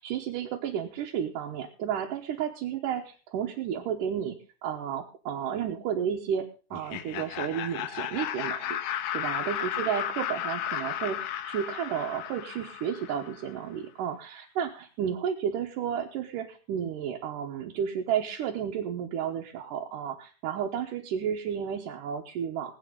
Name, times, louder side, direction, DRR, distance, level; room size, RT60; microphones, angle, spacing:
voice 1, 0.0-8.8 9.1-22.7, right 8 dB, 80° right, 0 dB, 2.7 m, -32 dB
Laughter, 6.7-13.5, left 10 dB, 70° left, 2.2 m, -34 dB
20.5 x 9.0 x 3.8 m, 0.36 s
omnidirectional pair, 3.7 m